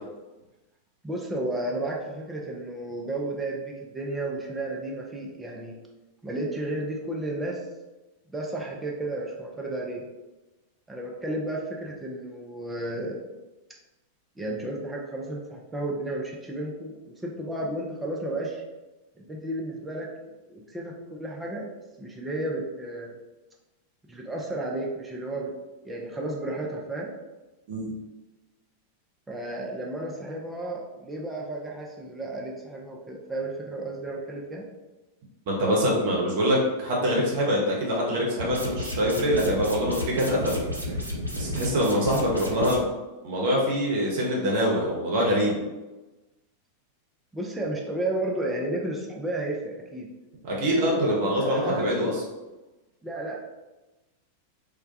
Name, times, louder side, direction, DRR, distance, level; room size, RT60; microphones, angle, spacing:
voice 1, 1.0-5.8 6.2-7.6 8.3-10.0 10.9-13.2 14.4-18.6 19.1-20.1 20.5-21.7 22.0-23.1 24.1-25.5 25.8-27.1 29.3-34.6 47.3-50.1 50.6-51.9 53.0-53.4, right 1 dB, 10° right, -2 dB, 0.4 m, -33 dB
voice 2, 35.5-40.6 40.9-41.0 41.3-42.8 43.2-45.6 50.4-52.2, equal, 50° right, -3 dB, 0.7 m, -24 dB
sound 1, 38.4-42.8, left 1 dB, 85° right, 0.4 m, -32 dB
2.2 x 2.1 x 2.6 m, 1.1 s
figure-of-eight pair, 90°, 0 cm